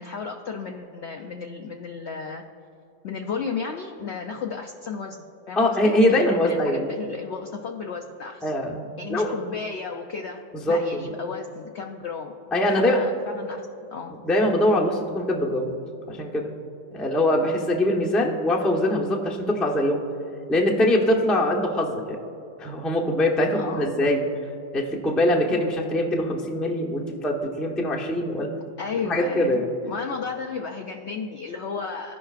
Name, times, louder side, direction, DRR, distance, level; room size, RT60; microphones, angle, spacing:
voice 1, 0.0-2.4 3.0-5.2 5.5-8.5 9.0-12.4 12.6-13.7 13.9-14.1 23.5-23.9 28.8-32.2, left 5 dB, 85° left, 3 dB, 0.6 m, -34 dB
voice 2, 5.6-6.9 8.4-8.8 9.1-9.3 10.5-11.0 12.5-13.0 14.2-15.7 16.1-16.5 16.9-20.0 20.5-22.2 22.6-24.2 24.7-28.5 29.1-29.7, left 1 dB, ahead, -1 dB, 0.3 m, -23 dB
16.0 x 5.6 x 2.4 m, 2.6 s
omnidirectional pair, 1.7 m